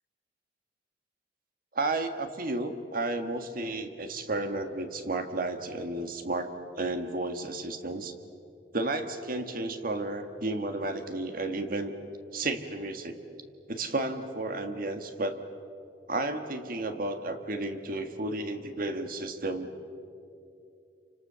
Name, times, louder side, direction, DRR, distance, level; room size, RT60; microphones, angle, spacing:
voice 1, 1.7-8.1 8.7-11.9 12.3-13.2 13.7-15.4 16.1-19.7, right 2 dB, 55° right, 7 dB, 1.7 m, -32 dB
29.0 x 26.0 x 6.9 m, 2.7 s
head